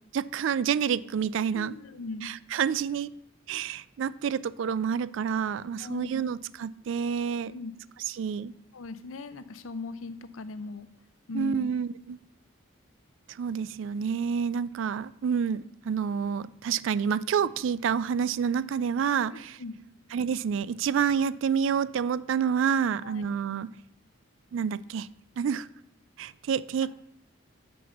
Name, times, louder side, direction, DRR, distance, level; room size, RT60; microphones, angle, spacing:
voice 1, 0.1-1.7 2.2-3.1 3.5-7.5 8.2-8.5 11.3-12.2 13.3-19.6 20.1-23.7 24.5-25.1 25.4-25.7 26.2-26.9, right 7 dB, 65° right, 18 dB, 0.3 m, -28 dB
voice 2, 1.5-2.3 5.8-6.2 7.5-7.7 8.7-10.9 11.3-11.7 19.3-19.8 23.0-23.3, left 3 dB, 80° left, 13 dB, 0.6 m, -39 dB
6.5 x 5.3 x 7.0 m, 0.74 s
head